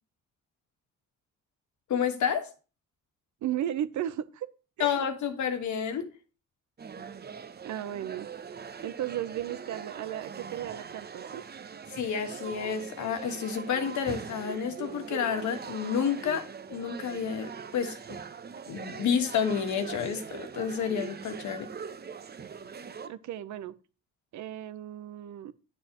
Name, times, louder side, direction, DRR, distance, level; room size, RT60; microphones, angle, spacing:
voice 1, 1.9-2.5 4.8-6.1 11.9-18.2 18.7-21.7, left 7 dB, 70° left, 1.5 m, -30 dB
voice 2, 3.4-4.5 4.8-5.0 7.6-8.3 8.8-11.4 23.0-23.7 24.3-25.5, right 11 dB, 70° right, 0.7 m, -35 dB
sound 1, 6.8-23.1, right 6 dB, 35° right, 0.8 m, -42 dB
9.8 x 7.2 x 3.0 m
cardioid pair, 90°, 30 cm